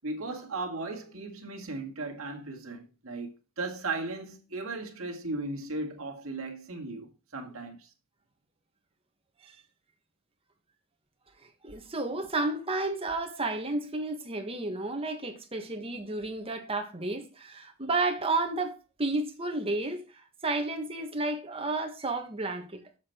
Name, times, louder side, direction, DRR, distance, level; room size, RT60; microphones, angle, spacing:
voice 1, 0.0-3.3 3.6-7.9, right 2 dB, 70° right, 1.9 m, -36 dB
voice 2, 11.4-23.0, right 2 dB, 25° right, 1.4 m, -32 dB
7.3 x 6.7 x 4.4 m
head